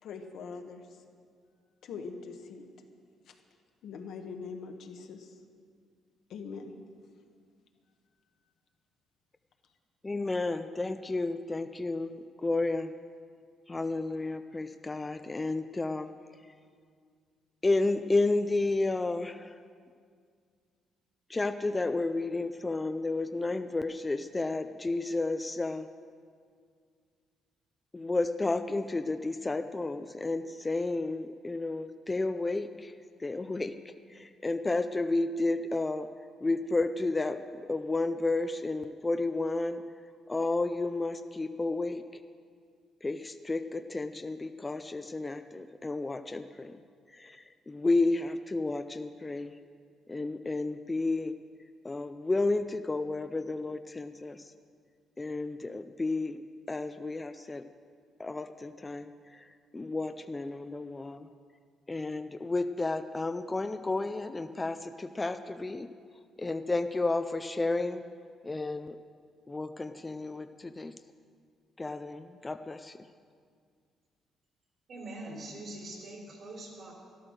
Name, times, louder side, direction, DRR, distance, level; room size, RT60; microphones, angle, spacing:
voice 1, 0.0-1.0 1.8-2.6 3.3-3.4 3.8-5.4 6.3-6.7, left 5 dB, 70° left, 3 dB, 1.2 m, -42 dB
voice 2, 10.0-12.9 13.7-16.5 17.6-19.6 21.3-25.9 27.9-36.1 36.4-39.8 40.3-42.2 43.0-46.8 47.1-49.6 50.1-51.3 51.8-54.5 55.2-56.4 56.7-57.7 58.2-61.3 61.9-65.9 66.4-68.0 68.4-69.0 69.5-70.9 71.8-73.1, left 2 dB, 15° left, 9 dB, 0.4 m, -32 dB
voice 3, 74.9-76.9, right 2 dB, 50° right, -2 dB, 3.4 m, -43 dB
13.0 x 12.0 x 6.4 m, 2.1 s
cardioid pair, 130°, 0 cm